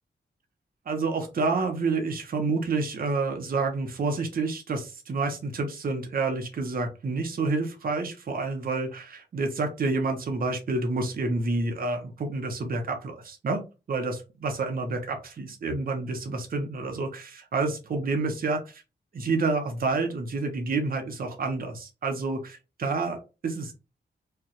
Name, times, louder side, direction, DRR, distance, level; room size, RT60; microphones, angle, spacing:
voice 1, 0.9-13.6 13.9-18.8 19.1-23.7, right 3 dB, 50° right, 4 dB, 0.7 m, -29 dB
4.8 x 2.2 x 2.9 m, 0.29 s
wide cardioid pair, 170°, 19 cm